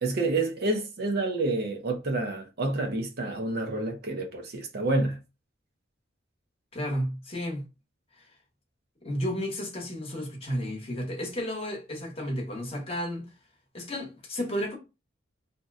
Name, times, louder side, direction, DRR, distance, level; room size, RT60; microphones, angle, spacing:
voice 1, 0.0-5.2, right 2 dB, 55° right, 0.6 m, -28 dB
voice 2, 6.7-7.6 8.2-8.3 9.0-13.3 13.7-14.8, equal, 30° left, 1.0 m, -32 dB
2.7 x 2.2 x 3.5 m
head